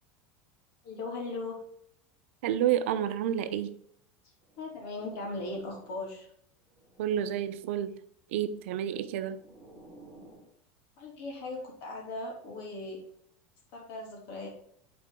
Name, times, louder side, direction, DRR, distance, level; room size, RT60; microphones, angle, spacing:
voice 1, 0.8-1.6 4.6-6.3 11.0-13.0 13.7-14.5, left 2 dB, 55° left, 2.8 m, -38 dB
voice 2, 2.4-3.8 7.0-8.0 8.3-9.4, right 10 dB, 80° right, 0.7 m, -29 dB
sound 1, 4.4-6.2 6.6-7.8 8.7-10.5, right 1 dB, ahead, 3.2 m, -55 dB
8.3 x 4.3 x 3.7 m
supercardioid pair, 145°, 7 cm